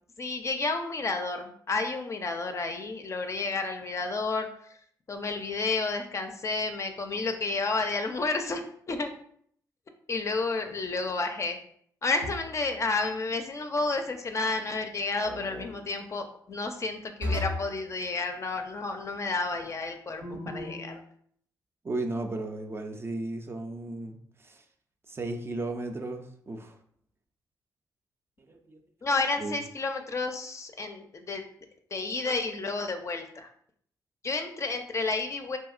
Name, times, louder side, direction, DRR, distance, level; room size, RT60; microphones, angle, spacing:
voice 1, 0.2-4.8 5.1-9.1 10.1-11.6 12.0-21.0 29.0-31.4 31.9-33.5 34.2-35.6, left 3 dB, 40° left, 5 dB, 0.4 m, -31 dB
sound 1, 12.2-12.7 15.2-15.7 17.2-17.7 20.2-20.9, left 1 dB, 75° right, 0.7 m, -34 dB
voice 2, 21.8-24.6 25.1-26.8 28.4-28.8 29.4-29.6, right 2 dB, 30° right, 5 dB, 0.4 m, -35 dB
2.8 x 2.6 x 2.4 m, 0.64 s
cardioid pair, 65°, 8 cm